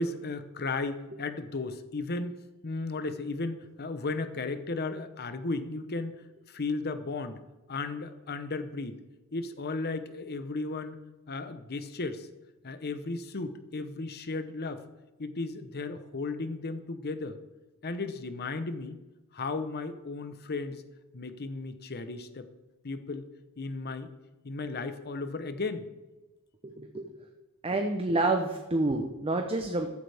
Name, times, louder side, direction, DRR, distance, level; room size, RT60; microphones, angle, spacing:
voice 1, 0.0-2.4 2.6-7.4 7.7-9.0 9.3-11.0 11.3-12.3 12.6-14.8 15.2-17.4 17.8-19.0 19.3-20.8 21.1-22.5 22.8-23.3 23.6-24.1 24.4-25.9, left 3 dB, 45° left, 10 dB, 0.9 m, -35 dB
voice 2, 26.6-27.1 27.6-29.9, right 2 dB, 25° right, 5 dB, 0.8 m, -28 dB
14.5 x 9.8 x 3.5 m, 1.1 s
head